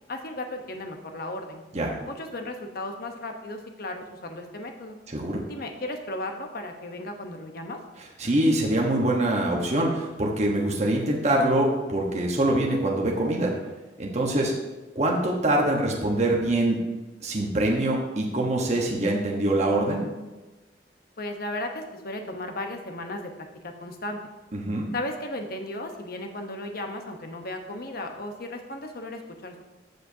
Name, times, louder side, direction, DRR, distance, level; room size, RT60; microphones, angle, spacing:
voice 1, 0.1-1.6 2.1-5.0 5.4-7.8 21.2-24.2 24.9-29.6, left 1 dB, 55° left, 4 dB, 0.9 m, -35 dB
voice 2, 5.1-5.4 8.2-13.5 14.0-14.5 14.9-16.8 17.2-20.1 24.5-24.9, right 1 dB, 40° right, -1 dB, 1.1 m, -24 dB
14.5 x 5.0 x 2.8 m, 1.1 s
head